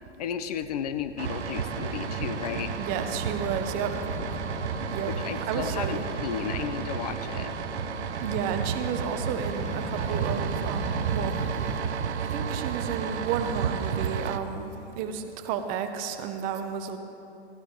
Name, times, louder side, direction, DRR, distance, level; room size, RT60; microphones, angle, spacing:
voice 1, 0.2-2.7 5.1-7.5, left 8 dB, 35° left, 10 dB, 0.5 m, -33 dB
sound 1, 1.2-11.8, left 2 dB, 20° left, 1.5 m, -39 dB
sound 2, 1.2-14.4, right 7 dB, 75° right, 0.7 m, -32 dB
voice 2, 2.8-4.0 4.9-5.1 5.5-6.0 8.2-11.4 12.2-17.0, right 7 dB, 25° right, 8 dB, 0.7 m, -32 dB
14.5 x 11.0 x 4.4 m, 2.9 s
hypercardioid pair, 125°, 34 cm